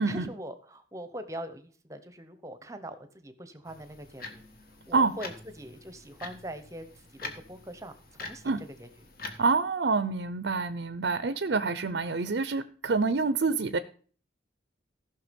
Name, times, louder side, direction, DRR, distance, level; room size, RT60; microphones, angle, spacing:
voice 1, 0.0-4.4 4.9-8.9, right 1 dB, 15° right, 10 dB, 0.9 m, -42 dB
sound 1, 3.7-9.4, left 3 dB, 50° left, 1.5 m, -45 dB
voice 2, 9.4-13.8, right 4 dB, 65° right, 12 dB, 0.6 m, -27 dB
15.0 x 6.0 x 5.2 m, 0.43 s
head